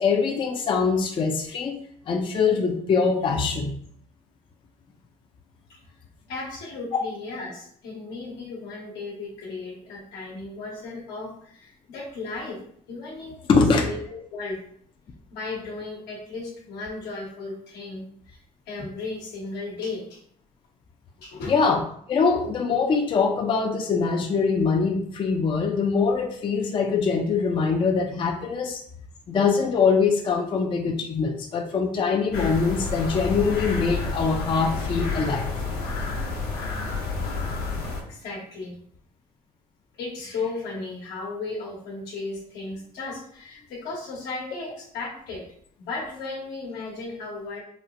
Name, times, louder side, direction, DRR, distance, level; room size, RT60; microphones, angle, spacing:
voice 1, 0.0-1.8 2.1-3.7 13.5-13.9 21.5-21.8 22.1-28.8 29.3-35.5, left 5 dB, 30° left, 2 dB, 0.4 m, -23 dB
voice 2, 6.3-12.6 12.9-14.0 14.3-14.6 15.3-20.2 21.2-21.5 38.0-38.8 39.9-45.5 45.8-47.6, left 3 dB, 80° left, -3 dB, 1.2 m, -35 dB
sound 1, 32.3-38.0, left 4 dB, 65° left, 1.1 m, -30 dB
4.1 x 2.0 x 2.5 m, 0.63 s
cardioid pair, 110°, 17 cm